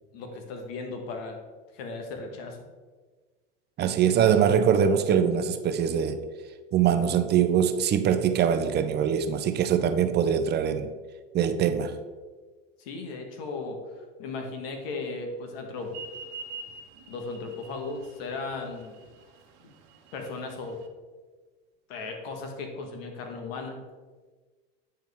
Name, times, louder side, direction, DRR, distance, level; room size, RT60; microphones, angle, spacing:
voice 1, 0.1-1.4 1.7-2.6 12.8-13.8 14.2-15.9 17.1-18.9 20.1-20.8 21.9-23.8, left 3 dB, 70° left, 4 dB, 1.4 m, -36 dB
voice 2, 3.8-6.2 6.7-10.9 11.3-12.0, right 8 dB, 35° right, 8 dB, 0.5 m, -23 dB
sound 1, 15.9-20.9, right 5 dB, 55° right, 1.1 m, -44 dB
9.1 x 4.5 x 3.5 m, 1.4 s
hypercardioid pair, 100°, 30 cm